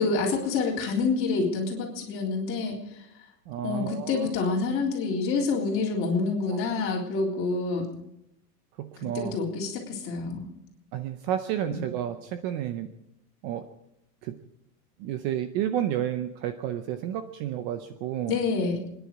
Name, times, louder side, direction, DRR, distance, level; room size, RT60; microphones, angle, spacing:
voice 1, 0.0-2.8 3.6-7.9 9.1-10.5 11.7-11.8 18.3-18.8, left 4 dB, 25° left, -2 dB, 3.7 m, -27 dB
voice 2, 3.5-4.5 6.5-6.6 8.8-9.4 10.9-12.9 13.4-13.7 14.2-14.4 15.0-18.4, right 11 dB, 30° right, 9 dB, 0.7 m, -31 dB
28.0 x 10.5 x 4.7 m, 0.82 s
supercardioid pair, 155°, 48 cm